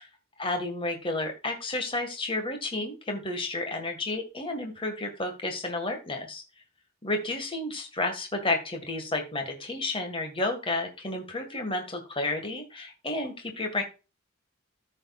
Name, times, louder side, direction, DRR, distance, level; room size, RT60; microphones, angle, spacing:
voice 1, 0.4-6.4 7.0-13.8, left 2 dB, 25° left, 4 dB, 1.9 m, -31 dB
14.0 x 6.5 x 2.4 m, 0.30 s
head